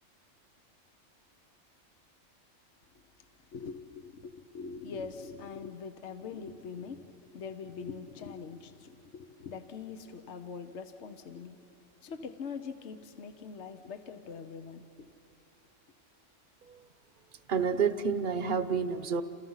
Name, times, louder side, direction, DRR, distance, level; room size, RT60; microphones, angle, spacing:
voice 1, 3.5-11.6 12.0-15.1, left 5 dB, 65° left, 8 dB, 1.2 m, -43 dB
voice 2, 17.5-19.2, right 6 dB, 45° right, 11 dB, 1.0 m, -29 dB
28.5 x 28.0 x 5.7 m, 2.7 s
omnidirectional pair, 1.3 m